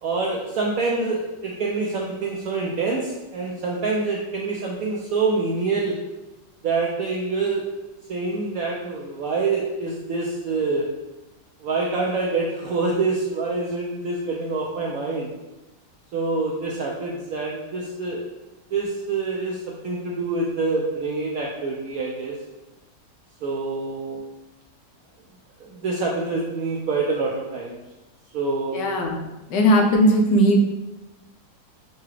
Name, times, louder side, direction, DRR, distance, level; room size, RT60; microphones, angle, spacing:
voice 1, 0.0-6.0 6.6-7.6 8.1-10.9 11.6-15.3 16.1-18.2 18.7-22.4 23.4-24.2 25.6-27.8 28.3-28.8, right 3 dB, 75° right, -3 dB, 0.8 m, -26 dB
voice 2, 28.7-29.2 29.5-30.6, equal, 75° left, 1 dB, 1.2 m, -18 dB
5.5 x 2.3 x 3.2 m, 1.0 s
omnidirectional pair, 2.0 m